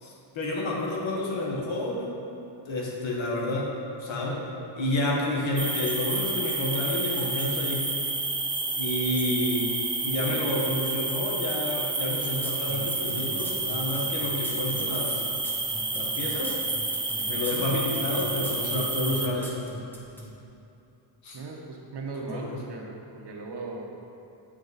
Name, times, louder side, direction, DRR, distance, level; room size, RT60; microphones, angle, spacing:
voice 1, 0.0-2.1 2.7-3.7 4.0-4.4 4.8-7.9 8.7-9.7 10.0-15.2 15.9-16.6 17.2-19.7 21.2-21.4 22.2-22.6, left 1 dB, 70° left, -3 dB, 1.3 m, -30 dB
sound 1, 5.6-19.3, right 3 dB, 10° right, 0.4 m, -30 dB
sound 2, 12.4-20.3, equal, 5° left, 0.9 m, -41 dB
voice 2, 17.3-17.7 21.3-23.9, right 3 dB, 60° right, 0 dB, 1.0 m, -39 dB
8.1 x 4.9 x 4.0 m, 2.8 s
wide cardioid pair, 135°, 47 cm